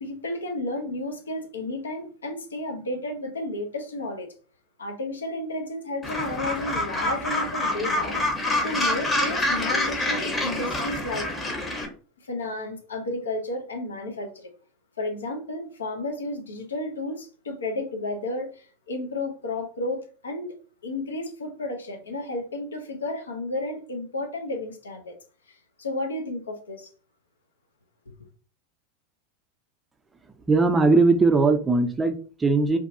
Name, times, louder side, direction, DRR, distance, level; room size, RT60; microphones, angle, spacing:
voice 1, 0.0-4.3 4.8-8.2 8.6-11.3 12.2-14.5 15.0-20.5 20.8-25.1 25.5-26.9, left 2 dB, 80° left, 0.6 m, -32 dB
Gull seagull, 6.0-11.9, left 1 dB, 15° left, 0.8 m, -26 dB
voice 2, 30.5-32.8, right 3 dB, 15° right, 0.4 m, -20 dB
2.6 x 2.3 x 2.6 m
figure-of-eight pair, 85°, 0 cm